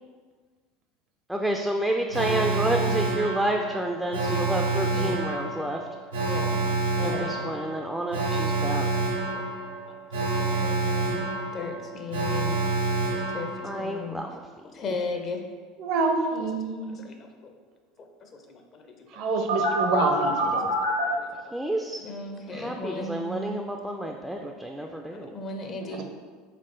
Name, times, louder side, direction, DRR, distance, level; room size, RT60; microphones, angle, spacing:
voice 1, 1.3-5.8 7.0-9.0 13.6-14.4 21.5-22.0 22.5-25.3, right 1 dB, 5° right, 2 dB, 0.3 m, -29 dB
Alarm, 2.1-14.0 19.5-21.0, right 3 dB, 85° right, 0.8 m, -28 dB
voice 2, 4.7-5.2 6.2-6.6 7.0-7.3 9.3-9.4 9.9-10.0 10.2-12.6 13.0-14.2 14.6-15.4 16.8-17.1 17.4-17.5 18.2-19.1 20.5-20.6 20.9-21.3 22.0-23.5 24.9-26.0, left 3 dB, 45° left, 4 dB, 0.6 m, -37 dB
voice 3, 15.8-17.0 19.2-20.7 25.8-26.0, right 3 dB, 55° right, 4 dB, 0.6 m, -27 dB
4.1 x 3.5 x 3.2 m, 1.5 s
hypercardioid pair, 75°, 0 cm